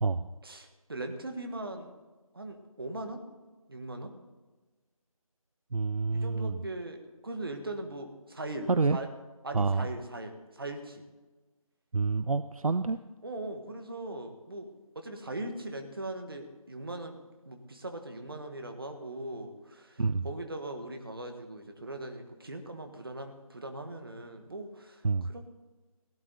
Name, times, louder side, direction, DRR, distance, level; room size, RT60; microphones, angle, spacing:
voice 1, 0.4-1.9 2.3-3.2 3.7-4.1 6.1-9.1 9.4-11.0 13.2-25.5, right 2 dB, 40° right, 5 dB, 1.5 m, -40 dB
voice 2, 5.7-6.6 8.7-9.0 9.5-9.9 11.9-13.0 20.0-20.3 25.0-25.3, right 4 dB, 70° right, 12 dB, 0.6 m, -27 dB
17.0 x 11.0 x 4.0 m, 1.2 s
figure-of-eight pair, 175°, 19 cm